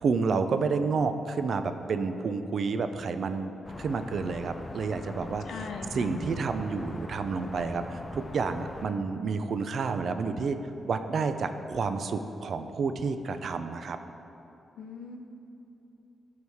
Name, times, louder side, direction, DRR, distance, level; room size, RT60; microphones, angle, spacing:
voice 1, 0.0-3.5 3.8-5.4 5.9-10.6 10.9-14.0, right 4 dB, 50° right, 9 dB, 0.4 m, -30 dB
sound 1, 3.6-8.9, left 2 dB, 20° left, 0.4 m, -42 dB
voice 2, 5.4-6.2 14.8-15.2, left 5 dB, 85° left, 4 dB, 0.6 m, -40 dB
12.5 x 4.7 x 3.5 m, 2.9 s
wide cardioid pair, 145°, 0 cm